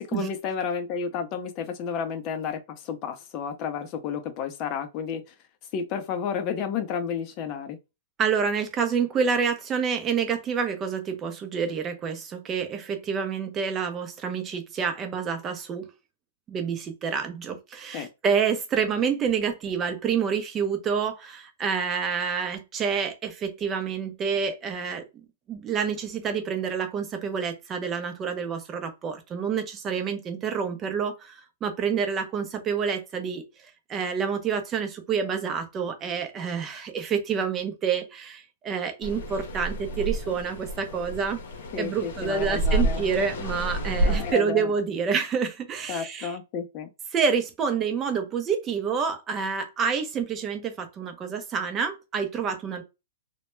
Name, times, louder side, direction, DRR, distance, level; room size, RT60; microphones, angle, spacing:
voice 1, 0.0-5.3 5.7-7.8 17.9-18.1 41.7-43.1 44.1-44.7 45.9-46.9, left 6 dB, 35° left, 0.5 m, -31 dB
voice 2, 8.2-15.9 16.5-25.0 25.5-33.4 33.9-41.4 41.8-46.3 47.1-52.8, right 6 dB, 20° right, 0.5 m, -28 dB
sound 1, 39.0-44.3, right 1 dB, 70° left, 0.7 m, -29 dB
2.1 x 2.1 x 2.9 m
hypercardioid pair, 145°, 0 cm